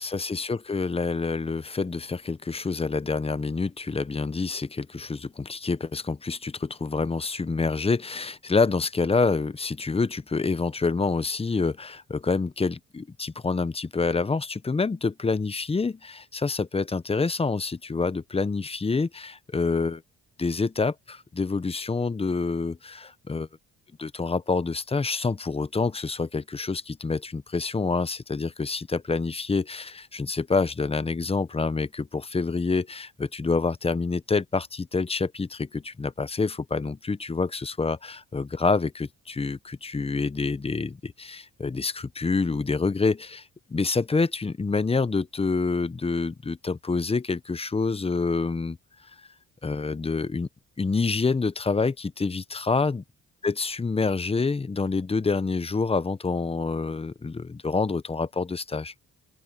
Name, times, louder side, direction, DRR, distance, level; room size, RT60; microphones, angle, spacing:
voice 1, 0.0-20.0 20.4-23.5 24.0-48.8 49.6-50.5 50.8-53.0 53.4-58.9, left 4 dB, 20° left, 0.8 m, -27 dB
open air
cardioid pair, 90°, 30 cm